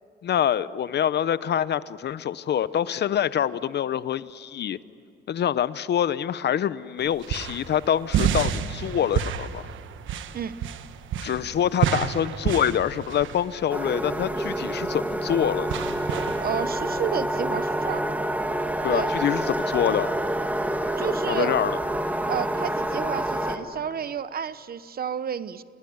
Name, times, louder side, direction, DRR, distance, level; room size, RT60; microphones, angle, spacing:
voice 1, 0.2-4.8 5.3-9.6 11.2-15.7 18.8-20.1 21.3-21.8, left 9 dB, 60° left, 16 dB, 0.8 m, -25 dB
sound 1, 7.0-16.9, right 9 dB, 80° right, 1.2 m, -30 dB
sound 2, 13.7-23.6, right 1 dB, 10° right, 2.2 m, -27 dB
voice 2, 16.4-18.1 18.9-19.1 21.0-21.5 22.3-25.6, right 8 dB, 50° right, 15 dB, 1.0 m, -31 dB
28.5 x 19.5 x 9.5 m, 2.5 s
cardioid pair, 90°, 20 cm